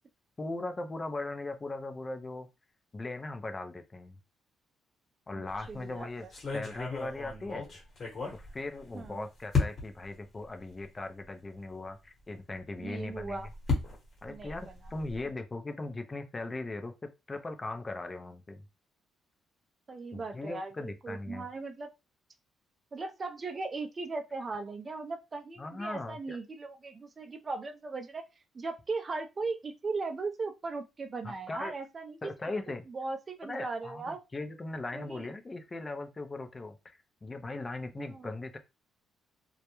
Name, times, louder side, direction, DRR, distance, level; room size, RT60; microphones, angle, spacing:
voice 1, 0.4-2.5 2.9-4.1 5.3-6.3 6.5-7.8 8.3-13.4 14.2-16.9 17.3-18.6 20.1-21.4 25.6-26.4 31.2-31.7 32.2-32.9 33.5-38.6, left 2 dB, 25° left, 7 dB, 0.4 m, -39 dB
voice 2, 5.3-6.3 8.9-9.3 12.8-13.5 14.3-14.8 19.9-21.9 22.9-28.3 28.5-34.2 34.9-35.3 38.0-38.3, right 3 dB, 35° right, 7 dB, 0.4 m, -38 dB
sound 1, 5.5-5.8 6.3-9.1 9.5-10.1 10.8-10.9 11.2-11.3 13.0-15.3, left 4 dB, 45° left, 1.1 m, -34 dB
2.3 x 2.1 x 2.9 m, 0.26 s
cardioid pair, 90°, 0 cm